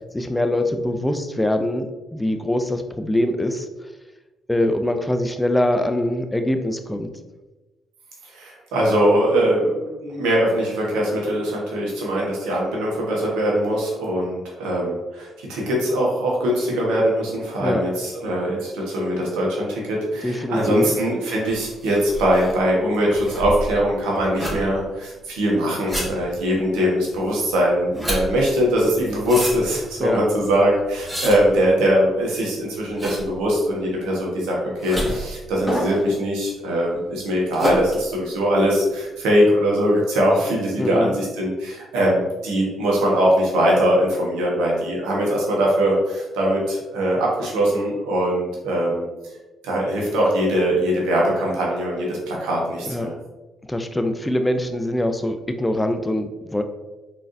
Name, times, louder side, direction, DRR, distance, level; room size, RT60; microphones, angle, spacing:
voice 1, 0.1-1.9 2.1-3.7 4.5-7.1 17.6-17.8 20.2-21.0 30.0-30.2 40.8-41.1 52.9-53.1 53.7-56.6, left 1 dB, 10° left, 7 dB, 0.5 m, -23 dB
voice 2, 8.2-49.1 49.6-53.1, equal, 80° right, -3 dB, 1.1 m, -21 dB
sound 1, 21.4-39.1, equal, 10° right, 1.4 m, -31 dB
3.8 x 3.4 x 2.5 m, 1.1 s
supercardioid pair, 55°, 0 cm